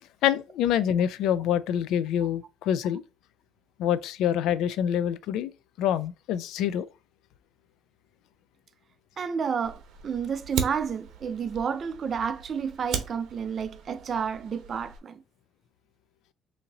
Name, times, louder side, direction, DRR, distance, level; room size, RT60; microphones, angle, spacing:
voice 1, 0.2-3.0 3.8-5.5 5.8-6.9, left 10 dB, 80° left, 0.3 m, -26 dB
voice 2, 9.2-15.2, right 6 dB, 45° right, 0.4 m, -30 dB
Fire, 9.6-15.0, right 7 dB, 70° right, 0.8 m, -38 dB
2.8 x 2.8 x 3.8 m
cardioid pair, 105°, 0 cm